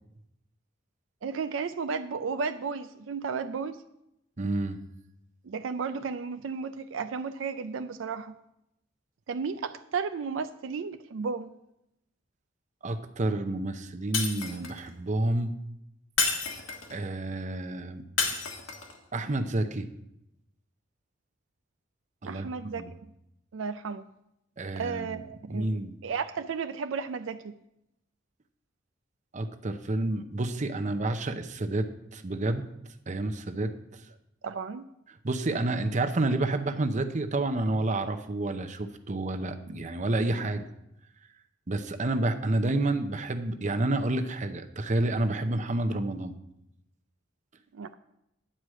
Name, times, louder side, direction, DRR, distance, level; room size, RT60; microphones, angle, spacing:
voice 1, 1.2-3.8 5.4-8.3 9.3-11.5 22.2-22.9 23.5-24.0 24.8-25.7 26.0-27.5 34.4-34.9 47.7-48.0, right 5 dB, 80° right, 9 dB, 0.4 m, -33 dB
voice 2, 4.4-4.8 12.8-15.5 16.9-18.4 19.1-19.9 22.2-22.5 22.8-22.9 24.6-25.2 25.5-26.0 29.3-32.6 33.1-34.0 35.2-40.7 41.7-46.3, right 2 dB, 40° right, 8 dB, 0.7 m, -29 dB
Shatter, 14.1-14.9 16.2-17.0 18.2-19.0, left 4 dB, 90° left, 1.6 m, -30 dB
10.0 x 4.8 x 7.6 m, 0.83 s
head